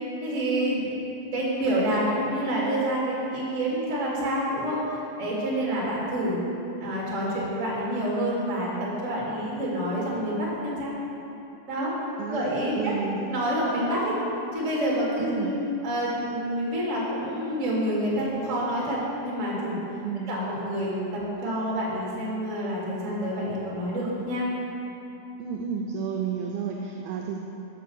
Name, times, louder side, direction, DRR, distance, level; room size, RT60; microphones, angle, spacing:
voice 1, 0.2-0.9 1.3-4.8 5.2-6.4 6.8-10.9 11.7-11.9 12.3-12.9 13.3-14.2 14.5-15.6 15.8-19.8 20.3-24.5, right 1 dB, 35° right, -6 dB, 1.4 m, -28 dB
voice 2, 12.8-13.2 15.2-15.6 20.0-20.3 25.4-27.4, right 7 dB, 85° right, 0 dB, 2.1 m, -31 dB
7.2 x 5.5 x 6.8 m, 2.9 s
omnidirectional pair, 4.7 m